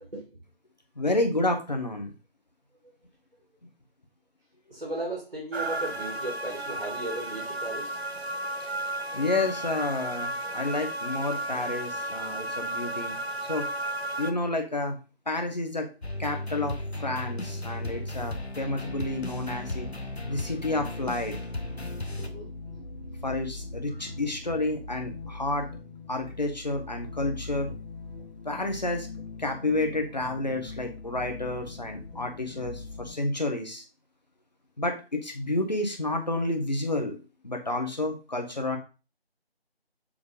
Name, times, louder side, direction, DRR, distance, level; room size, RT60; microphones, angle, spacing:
voice 1, 1.0-2.1 9.1-13.1 13.5-13.7 14.2-15.0 15.3-15.9 16.2-19.9 20.3-21.3 23.2-25.7 26.1-27.7 28.4-29.1 29.4-33.8 34.8-37.2 37.4-38.8, left 2 dB, 40° left, 4 dB, 1.4 m, -30 dB
voice 2, 4.7-8.0 20.3-20.4 22.2-22.5 23.9-24.1, right 2 dB, 55° right, -2 dB, 2.3 m, -36 dB
sound 1, 5.5-14.3, right 1 dB, 80° right, 1.1 m, -33 dB
sound 2, 16.0-22.3, left 1 dB, 90° left, 1.3 m, -36 dB
sound 3, 17.4-33.1, left 3 dB, 60° left, 2.3 m, -41 dB
7.4 x 3.3 x 5.1 m, 0.32 s
figure-of-eight pair, 170°, 31 cm